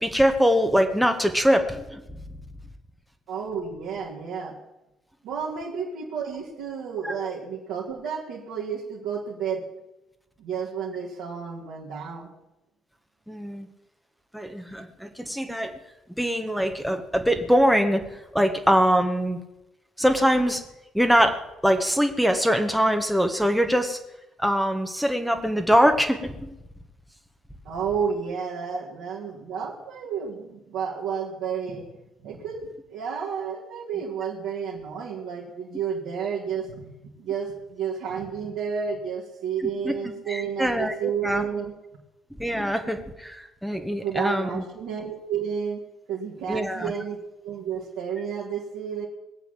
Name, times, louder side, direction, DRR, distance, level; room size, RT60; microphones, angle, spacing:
voice 1, 0.0-2.0 7.0-7.1 13.3-13.7 14.3-15.7 16.2-18.0 18.3-19.4 20.0-20.6 20.9-21.4 21.6-24.0 24.4-26.5 39.6-39.9 40.3-41.4 42.4-44.6 46.5-46.9, equal, ahead, 5 dB, 1.7 m, -23 dB
voice 2, 3.3-4.6 5.2-9.6 10.4-12.3 27.6-31.8 32.2-36.8 37.2-41.7 44.0-45.8 46.1-49.1, right 7 dB, 60° right, -6 dB, 2.7 m, -31 dB
20.0 x 8.3 x 7.6 m, 0.95 s
figure-of-eight pair, 45°, 0 cm